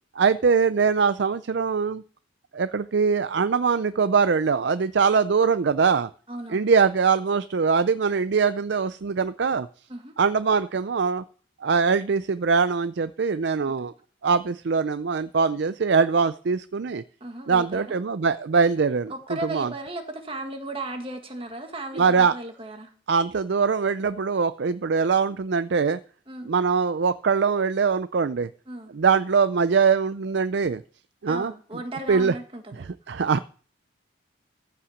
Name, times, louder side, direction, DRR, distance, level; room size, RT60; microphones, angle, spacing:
voice 1, 0.2-2.0 2.5-6.1 6.5-9.7 10.2-11.2 11.6-13.9 14.2-17.0 17.5-19.1 19.5-19.7 22.0-22.3 23.1-26.0 26.4-28.5 28.9-30.8 31.2-31.5 32.1-32.3 32.8-33.4, right 5 dB, 60° right, 13 dB, 0.4 m, -22 dB
voice 2, 6.3-6.7 9.9-10.1 17.2-18.0 19.1-22.9 26.3-26.5 28.7-28.9 31.3-32.8, right 2 dB, 30° right, 4 dB, 1.8 m, -36 dB
14.5 x 5.8 x 7.1 m, 0.43 s
head